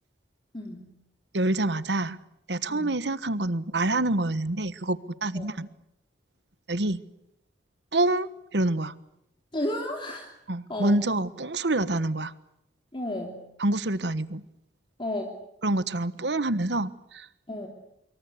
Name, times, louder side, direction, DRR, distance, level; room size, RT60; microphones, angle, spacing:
voice 1, 0.5-0.9 2.7-3.0 5.3-5.6 9.5-10.3 10.7-11.0 12.9-13.4 15.0-15.3 17.5-17.7, left 1 dB, 30° left, 2 dB, 3.1 m, -32 dB
voice 2, 1.3-2.2 2.5-5.7 6.7-7.0 7.9-9.0 10.5-12.3 13.6-14.4 15.6-17.3, right 2 dB, 70° right, 15 dB, 1.3 m, -27 dB
26.0 x 23.5 x 8.2 m, 0.80 s
head